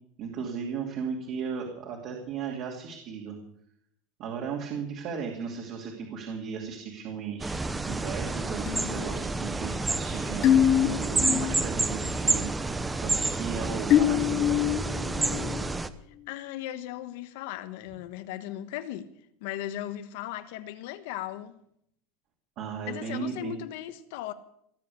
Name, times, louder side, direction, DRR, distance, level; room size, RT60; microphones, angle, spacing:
voice 1, 0.2-3.4 4.2-7.5 7.9-12.5 13.0-14.6 22.6-23.6, right 6 dB, 45° right, 2.6 m, -36 dB
sound 1, 7.4-15.9, right 3 dB, 10° right, 0.7 m, -29 dB
sound 2, 8.7-11.6 12.0-12.4 13.9-15.8, left 10 dB, 35° left, 0.7 m, -26 dB
voice 2, 16.3-19.1 19.4-21.6 22.9-24.3, left 13 dB, 65° left, 1.2 m, -37 dB
18.0 x 7.7 x 8.4 m
supercardioid pair, 160°, 0 cm